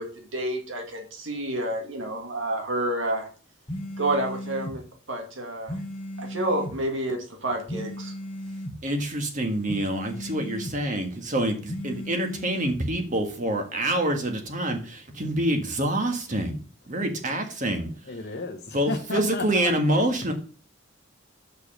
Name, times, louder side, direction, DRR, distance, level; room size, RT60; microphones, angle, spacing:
voice 1, 0.0-3.3 4.0-4.8 5.1-5.8 6.2-8.1, right 1 dB, 70° right, 2 dB, 2.2 m, -29 dB
sound 1, 3.7-4.8 5.7-6.8 7.7-8.8 9.7-10.8 11.7-12.8, left 1 dB, 25° left, 1.2 m, -35 dB
voice 2, 8.8-16.6 16.9-17.9 18.7-20.3, right 1 dB, 40° right, 4 dB, 1.6 m, -26 dB
voice 3, 17.8-19.7, left 3 dB, 55° left, 2 dB, 1.0 m, -33 dB
6.8 x 5.2 x 6.4 m, 0.39 s
head